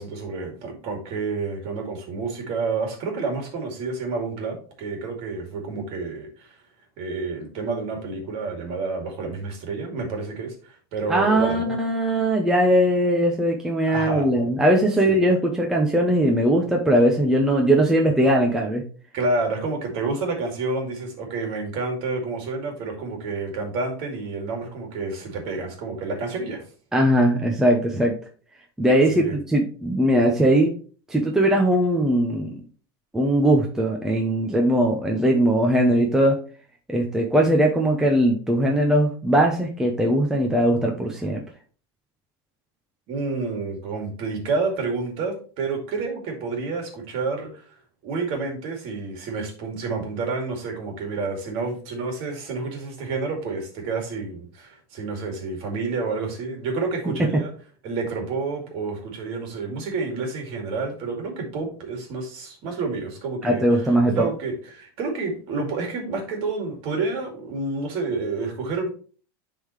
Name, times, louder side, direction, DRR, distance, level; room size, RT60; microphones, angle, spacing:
voice 1, 0.0-6.5 7.0-11.6 13.9-14.3 15.0-15.1 19.1-26.6 29.1-29.4 43.1-47.6 48.0-57.5 57.8-68.9, right 3 dB, 45° right, 2 dB, 2.4 m, -29 dB
voice 2, 11.1-18.8 26.9-28.1 28.8-30.7 31.1-32.5 33.1-36.4 36.9-41.4 63.4-64.2, right 1 dB, 5° right, 0 dB, 0.8 m, -20 dB
10.0 x 3.8 x 3.2 m, 0.41 s
supercardioid pair, 155°, 13 cm